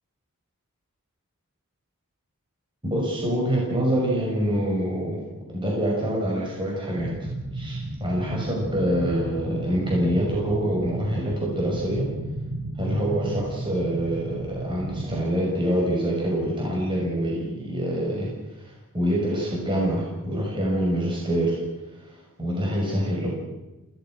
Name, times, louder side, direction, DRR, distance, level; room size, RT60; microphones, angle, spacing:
voice 1, 2.8-5.2 5.5-12.1 12.8-23.3, equal, 20° right, -3 dB, 6.0 m, -26 dB
sound 1, 6.9-15.2, right 2 dB, 40° right, 1.4 m, -33 dB
28.0 x 17.5 x 6.3 m, 1.1 s
head